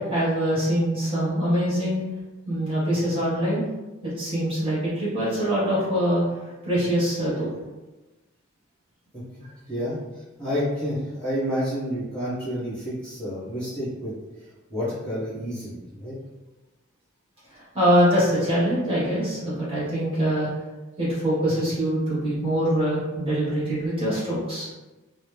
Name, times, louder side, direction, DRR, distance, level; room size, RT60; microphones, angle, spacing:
voice 1, 0.0-2.0 2.5-3.6 4.0-6.2 6.6-7.5 17.7-20.5 21.0-24.7, equal, 25° right, -8 dB, 1.5 m, -23 dB
voice 2, 9.7-10.0 10.4-14.1 14.7-16.2, equal, 5° left, -11 dB, 1.3 m, -29 dB
4.1 x 2.0 x 3.3 m, 1.1 s
head